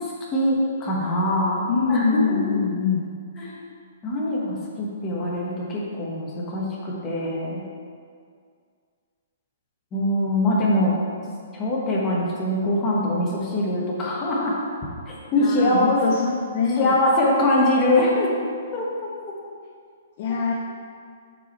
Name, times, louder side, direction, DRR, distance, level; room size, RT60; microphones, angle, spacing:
voice 1, 0.0-2.6 3.4-3.6 4.0-7.6 9.9-11.0 11.5-14.5 15.1-16.0 16.8-18.3 18.7-18.9, left 1 dB, 15° left, -4 dB, 1.1 m, -23 dB
voice 2, 1.7-3.0 15.3-17.0 20.2-20.5, left 5 dB, 35° left, -1 dB, 0.5 m, -24 dB
6.8 x 4.8 x 4.4 m, 2.1 s
hypercardioid pair, 165°, 0 cm